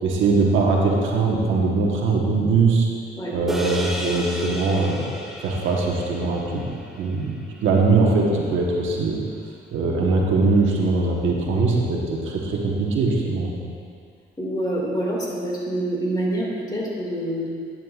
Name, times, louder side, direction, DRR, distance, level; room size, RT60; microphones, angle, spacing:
voice 1, 0.0-2.9 3.3-5.1 5.4-6.6 7.0-7.3 7.6-9.2 9.7-13.5, right 3 dB, 80° right, -2 dB, 1.3 m, -21 dB
sound 1, 3.5-8.1, equal, ahead, 1.0 m, -33 dB
voice 2, 14.4-17.5, right 1 dB, 20° left, -4 dB, 2.2 m, -26 dB
11.0 x 8.9 x 2.5 m, 2.3 s
cardioid pair, 90°, 20 cm